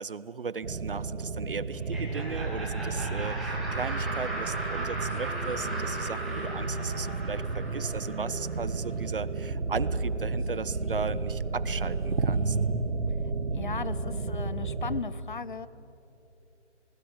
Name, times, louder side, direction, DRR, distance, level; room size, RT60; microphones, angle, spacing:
voice 1, 0.0-12.6, right 5 dB, 50° right, 17 dB, 0.8 m, -36 dB
sound 1, 0.6-15.0, right 3 dB, 75° right, 1.7 m, -32 dB
Laughter, 1.7-8.5, right 1 dB, ahead, 1.1 m, -38 dB
sound 2, 5.1-9.7 10.0-10.1 10.4-13.0, left 2 dB, 65° left, 5.0 m, -49 dB
voice 2, 13.5-15.7, left 5 dB, 45° left, 16 dB, 0.8 m, -36 dB
27.0 x 20.5 x 7.2 m, 3.0 s
figure-of-eight pair, 165°, 36 cm